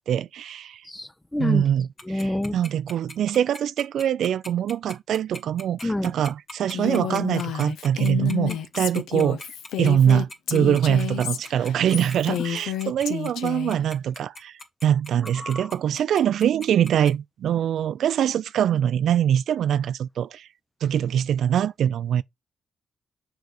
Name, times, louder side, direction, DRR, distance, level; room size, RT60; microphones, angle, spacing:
voice 1, 0.0-0.8 1.4-9.4 9.8-20.5 20.8-22.2, right 9 dB, 75° right, 0.3 m, -23 dB
voice 2, 0.9-1.6 2.1-2.6 5.8-6.1 8.5-8.6 10.6-10.7 15.4-15.7, left 1 dB, 15° left, 0.6 m, -27 dB
Tick-tock, 2.0-17.1, left 2 dB, 45° left, 2.3 m, -40 dB
Female speech woman speaking, 6.7-13.8, left 10 dB, 85° left, 0.7 m, -30 dB
6.7 x 4.7 x 4.0 m
supercardioid pair, 50°, 0 cm